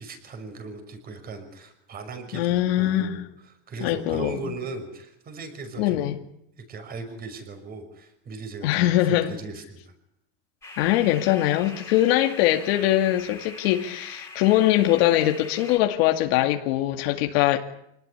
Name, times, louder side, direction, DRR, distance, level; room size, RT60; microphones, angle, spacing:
voice 1, 0.0-6.1 6.6-9.9, right 3 dB, 30° right, 6.0 m, -38 dB
voice 2, 2.3-3.2 3.8-4.3 5.8-6.2 8.6-9.3 10.8-17.6, left 14 dB, 70° left, 2.3 m, -22 dB
sound 1, 10.6-15.8, left 3 dB, 10° left, 4.6 m, -42 dB
26.5 x 19.0 x 9.9 m
supercardioid pair, 155°, 31 cm